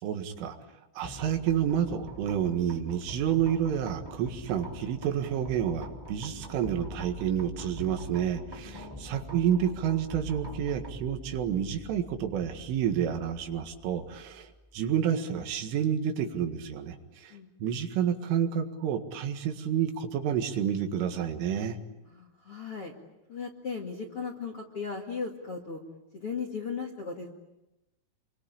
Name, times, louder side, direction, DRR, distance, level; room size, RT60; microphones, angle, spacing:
voice 1, 0.0-0.6 1.0-21.8, right 9 dB, 80° right, 6 dB, 4.4 m, -29 dB
sound 1, 1.0-14.9, equal, 5° right, 2.0 m, -45 dB
voice 2, 8.6-9.1 17.3-17.8 22.0-22.9 23.3-25.8 26.1-27.3, left 5 dB, 45° left, 2 dB, 2.0 m, -37 dB
28.5 x 23.5 x 8.7 m, 0.96 s
omnidirectional pair, 5.5 m